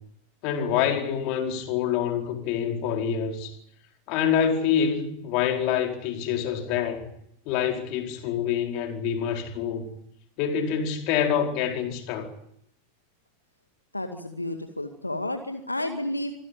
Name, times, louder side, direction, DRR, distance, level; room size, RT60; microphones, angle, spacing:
voice 1, 0.4-3.5 4.1-7.1 7.5-9.9 10.4-12.3, left 8 dB, 45° left, 4.5 m, -26 dB
voice 2, 13.9-16.3, left 1 dB, 85° left, 2.0 m, -31 dB
25.5 x 16.0 x 9.7 m
figure-of-eight pair, 90°, 0 cm